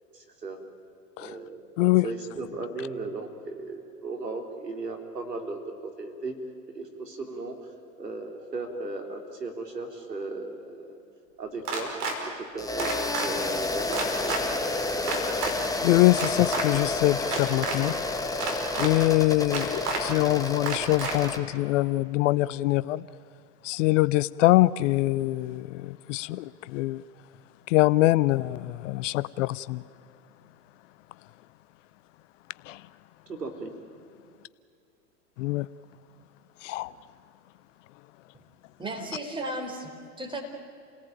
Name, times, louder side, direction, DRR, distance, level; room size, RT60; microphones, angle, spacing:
voice 1, 0.1-0.6 1.2-1.6 2.0-6.4 6.7-7.6 8.0-11.0 11.4-11.9 12.4-14.3 33.3-33.7, right 3 dB, 90° right, 4 dB, 3.5 m, -36 dB
sound 1, 11.7-12.2 12.8-13.3 13.9-14.4 15.1-15.5 16.1-16.7 17.2-17.8 18.4-18.9 19.5-20.0 20.7-21.1, right 4 dB, 70° right, 5.2 m, -30 dB
sound 2, 12.6-21.4, left 2 dB, 5° left, 1.7 m, -30 dB
voice 2, 15.8-17.9 18.8-23.0 23.6-27.0 27.7-29.8 32.7-32.8 35.4-35.7 36.6-36.9, left 18 dB, 50° left, 19 dB, 0.6 m, -24 dB
voice 3, 38.8-40.4, right 1 dB, 10° right, 3 dB, 4.5 m, -35 dB
29.5 x 18.5 x 9.2 m, 2.5 s
hypercardioid pair, 95°, 47 cm